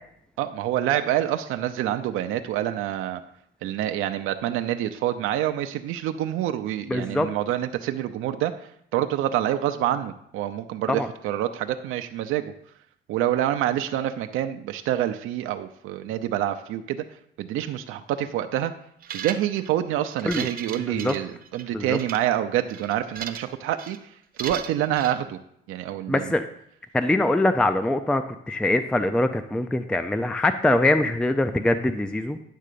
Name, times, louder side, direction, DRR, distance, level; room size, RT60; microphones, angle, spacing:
voice 1, 0.4-3.2 3.6-8.5 8.9-12.5 13.1-17.0 17.4-18.7 19.1-25.4 25.7-26.2, right 12 dB, 80° right, 7 dB, 0.6 m, -27 dB
voice 2, 6.9-7.3 10.9-11.1 20.2-20.5 20.9-21.1 21.7-22.0 26.1-26.5 26.9-32.4, left 1 dB, 5° left, 10 dB, 0.4 m, -23 dB
sound 1, 19.0-19.7 20.1-21.6 21.9-22.2 22.7-23.5 23.8-24.0 24.4-25.1, right 8 dB, 45° right, 0.8 m, -36 dB
10.0 x 3.7 x 6.8 m, 0.72 s
cardioid pair, 115°, 21 cm